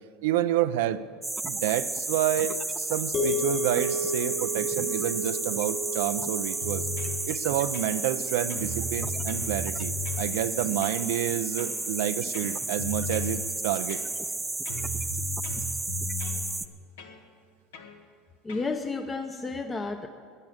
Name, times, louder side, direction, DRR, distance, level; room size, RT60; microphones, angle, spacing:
voice 1, 0.2-1.0 1.5-6.9 7.3-14.0, right 12 dB, 80° right, 10 dB, 0.4 m, -29 dB
sound 1, 1.2-16.7, right 3 dB, 10° right, 0.6 m, -32 dB
sound 2, 3.1-11.4, right 1 dB, 45° left, 3.9 m, -35 dB
sound 3, 6.6-7.2 7.7-8.2 8.5-10.3 10.8-11.1 11.6-11.8 12.3-13.4 13.9-14.4 14.7-16.5 17.0-17.2 17.7-18.0 18.5-18.7, left 2 dB, 85° left, 1.4 m, -36 dB
voice 2, 18.4-20.1, left 3 dB, 20° left, 6 dB, 0.7 m, -32 dB
11.0 x 10.0 x 8.6 m, 2.1 s
supercardioid pair, 95°, 0 cm